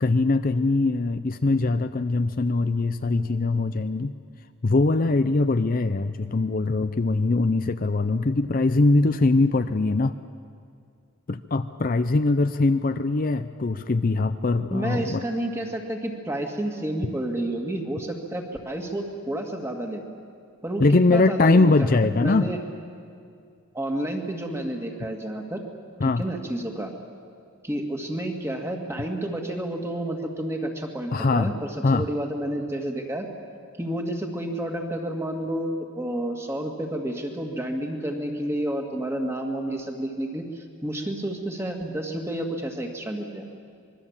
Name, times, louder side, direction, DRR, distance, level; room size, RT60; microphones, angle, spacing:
voice 1, 0.0-4.1 4.6-10.1 11.3-15.2 20.8-22.5 26.0-26.2 31.1-31.5 31.8-32.0, left 3 dB, 40° left, 10 dB, 0.5 m, -22 dB
voice 2, 14.7-20.0 20.6-21.9 22.2-22.6 23.7-25.6 26.0-26.9 27.6-33.3 33.8-43.4, right 1 dB, 10° right, 2 dB, 2.0 m, -30 dB
25.5 x 22.5 x 7.3 m, 2.3 s
head